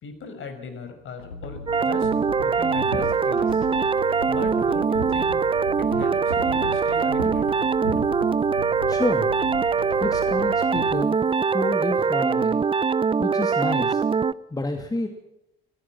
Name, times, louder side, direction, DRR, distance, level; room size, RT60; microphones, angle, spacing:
voice 1, 0.0-2.1 2.4-3.7 4.2-5.4 5.8-7.5, left 4 dB, 45° left, 8 dB, 5.7 m, -38 dB
sound 1, 1.2-11.0, left 3 dB, 80° left, 2.1 m, -37 dB
sound 2, 1.7-14.3, right 5 dB, 20° right, 0.7 m, -23 dB
Fireworks, 2.7-12.0, right 2 dB, 85° right, 4.2 m, -41 dB
voice 2, 8.9-9.3 10.0-11.2 11.5-12.6 13.2-14.0 14.5-15.1, left 2 dB, 15° left, 5 dB, 2.6 m, -29 dB
24.5 x 17.5 x 6.0 m, 0.81 s
figure-of-eight pair, 60°, 29 cm